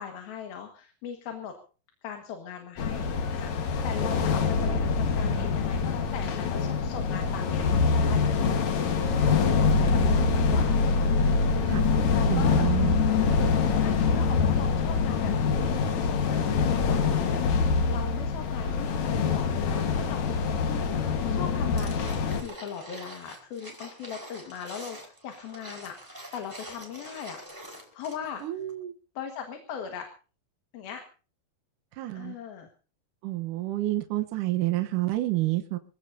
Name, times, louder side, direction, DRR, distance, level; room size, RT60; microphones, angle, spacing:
voice 1, 0.0-1.5 2.0-8.2 9.6-10.9 11.5-12.6 13.7-21.0 21.3-22.1 22.4-26.0 26.3-27.4 27.9-28.6 29.1-30.1 30.7-31.0 32.1-32.7, left 8 dB, 80° left, 4 dB, 3.5 m, -39 dB
sound 1, 2.8-22.4, left 5 dB, 55° left, 2.5 m, -25 dB
voice 2, 9.6-10.7 11.7-11.9 12.3-13.0 13.3-13.4 28.4-28.9 32.0-32.4 33.2-35.8, right 16 dB, 70° right, 6 dB, 2.4 m, -30 dB
sound 2, 21.8-28.4 28.7-28.8, right 1 dB, 5° right, 4.5 m, -45 dB
26.0 x 16.0 x 2.7 m, 0.37 s
omnidirectional pair, 4.3 m